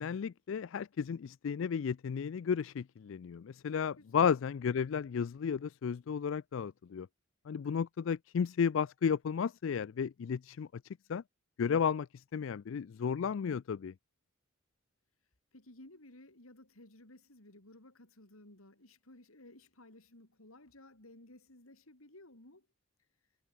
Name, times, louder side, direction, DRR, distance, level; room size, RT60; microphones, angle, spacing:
voice 1, 0.0-7.1 7.5-10.7 11.1-11.2 11.6-13.9, left 7 dB, 65° left, 0.4 m, -33 dB
voice 2, 4.0-4.4 15.5-22.7, left 1 dB, 85° left, 4.4 m, -57 dB
head